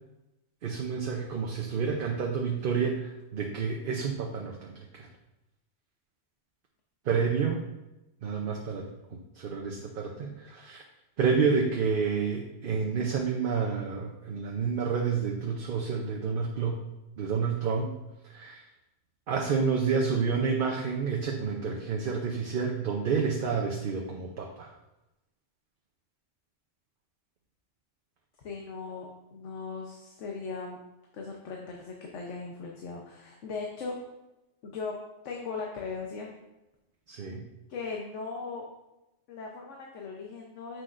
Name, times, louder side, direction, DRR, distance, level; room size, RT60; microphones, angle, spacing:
voice 1, 0.6-5.1 7.1-7.7 8.2-10.8 11.2-16.8 17.2-17.9 18.2-18.6 19.3-24.7 37.1-37.5, right 5 dB, 55° right, 0 dB, 0.8 m, -29 dB
voice 2, 28.4-30.8 31.1-34.0 34.6-35.0 35.2-36.3 37.7-38.6 39.3-40.8, left 4 dB, 90° left, 0 dB, 1.1 m, -38 dB
7.9 x 6.0 x 2.5 m, 0.96 s
omnidirectional pair, 1.2 m